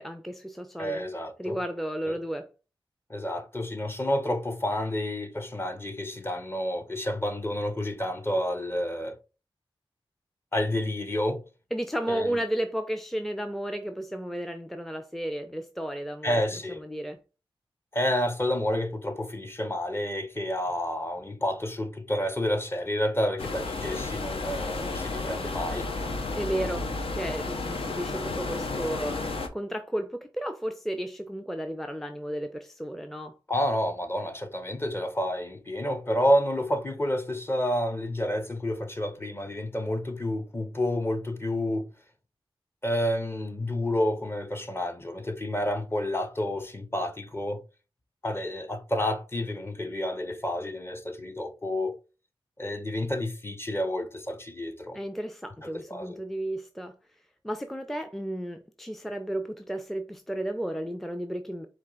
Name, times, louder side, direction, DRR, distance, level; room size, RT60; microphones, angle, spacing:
voice 1, 0.0-1.1 1.4-2.5 11.7-16.4 16.7-17.2 26.3-26.9 27.2-33.3 54.9-56.9 57.4-61.7, right 1 dB, ahead, 0.5 m, -33 dB
voice 2, 0.8-1.6 2.1-2.2 3.1-9.2 10.5-11.4 12.1-12.3 16.2-16.8 17.9-25.9 33.5-41.9 42.8-47.6 48.2-52.0 52.6-55.0 55.6-56.2, left 1 dB, 25° left, 0.8 m, -29 dB
sound 1, 23.4-29.5, left 3 dB, 75° left, 0.7 m, -32 dB
4.4 x 2.4 x 3.7 m
cardioid pair, 55°, 10 cm